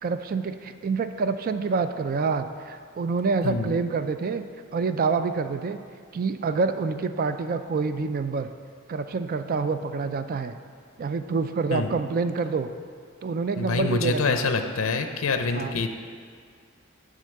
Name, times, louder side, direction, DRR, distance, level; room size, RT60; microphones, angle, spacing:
voice 1, 0.0-4.4 4.7-5.8 6.1-8.5 8.9-10.6 11.0-12.7 13.2-14.5 15.5-15.8, right 4 dB, 45° right, 10 dB, 0.4 m, -27 dB
voice 2, 13.6-15.9, left 4 dB, 70° left, 7 dB, 0.6 m, -26 dB
10.0 x 3.8 x 6.4 m, 2.1 s
head